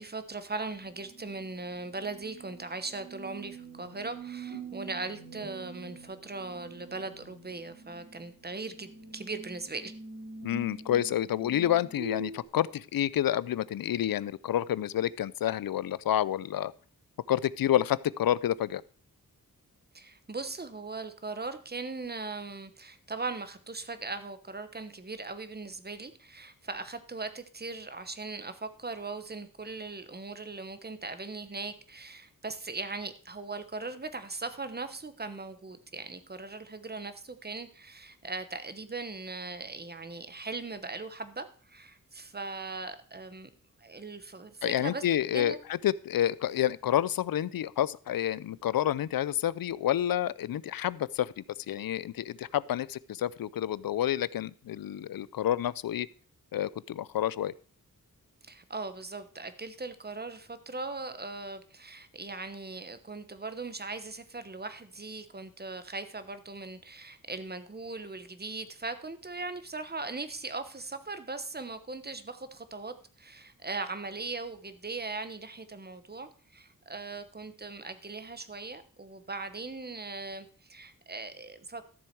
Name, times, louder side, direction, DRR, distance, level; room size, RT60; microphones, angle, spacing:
voice 1, 0.0-9.9 19.9-43.5 43.8-45.0 45.3-45.6 58.4-81.8, right 3 dB, 30° right, 11 dB, 1.1 m, -39 dB
sound 1, 0.7-12.4, right 3 dB, 80° right, 3.7 m, -45 dB
voice 2, 10.4-16.7 17.3-18.8 44.6-56.1 56.5-57.5, left 11 dB, 80° left, 20 dB, 0.5 m, -29 dB
13.0 x 7.1 x 4.6 m, 0.42 s
wide cardioid pair, 100°, 35 cm